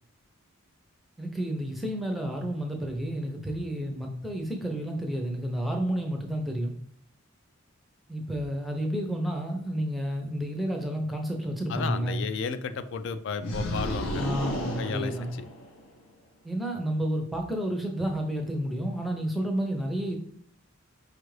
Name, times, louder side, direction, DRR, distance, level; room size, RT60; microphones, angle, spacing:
voice 1, 1.2-6.7 8.1-12.3 14.2-15.3 16.4-20.2, equal, ahead, 1 dB, 0.5 m, -30 dB
voice 2, 11.7-14.3 14.8-15.1, left 5 dB, 55° left, 11 dB, 0.3 m, -33 dB
sound 1, 13.4-15.9, equal, 75° left, 0.7 m, -33 dB
5.0 x 2.4 x 3.1 m, 0.62 s
head